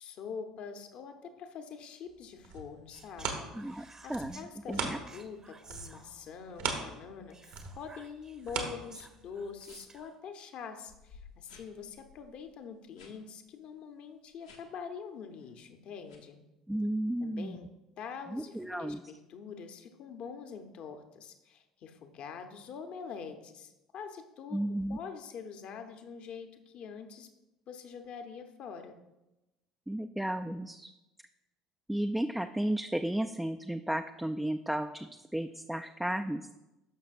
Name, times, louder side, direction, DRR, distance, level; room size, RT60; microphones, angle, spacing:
voice 1, 0.0-3.5 3.8-16.4 17.2-24.6 24.9-27.3 27.7-29.0, left 6 dB, 50° left, 7 dB, 0.9 m, -45 dB
sound 1, 2.2-5.4 5.6-9.5 10.0-10.1, right 5 dB, 65° right, 1.2 m, -39 dB
Speech, 2.9-4.5 5.1-6.5 7.3-10.2, right 4 dB, 25° right, 0.8 m, -54 dB
voice 2, 3.5-4.4 4.7-5.0 16.7-17.6 18.3-19.0 24.5-25.0 29.9-30.9 31.9-36.5, right 1 dB, 5° right, 6 dB, 0.3 m, -33 dB
sound 2, 9.6-10.0 10.5-10.6 10.9-13.2 13.5-13.7 14.3-14.8 15.3-15.6 16.1-16.2, left 5 dB, 80° left, 1.2 m, -57 dB
12.0 x 5.9 x 2.5 m, 0.99 s
figure-of-eight pair, 60°, 2 cm